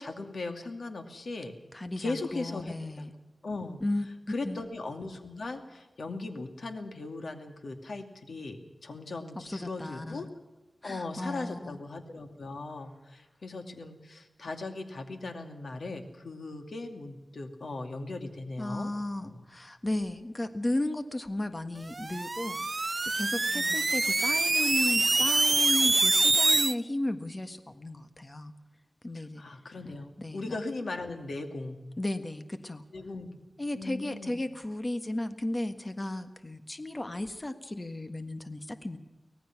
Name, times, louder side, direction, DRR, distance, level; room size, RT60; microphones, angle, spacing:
voice 1, 0.0-1.5 2.0-3.1 3.4-3.8 4.3-10.3 10.8-18.9 19.2-19.4 23.4-23.8 29.1-31.8 32.9-33.4 33.7-34.5, left 3 dB, 85° left, 6 dB, 2.4 m, -38 dB
voice 2, 1.7-3.1 3.8-4.1 4.4-4.6 9.4-10.3 10.8-11.8 18.6-22.9 23.1-28.5 29.0-29.4 30.2-30.6 32.0-32.8 33.6-39.0, left 1 dB, 30° left, 9 dB, 1.5 m, -34 dB
sound 1, 21.9-26.7, right 3 dB, 45° right, 0.6 m, -25 dB
24.5 x 18.0 x 6.0 m, 1.1 s
wide cardioid pair, 85°, 0 cm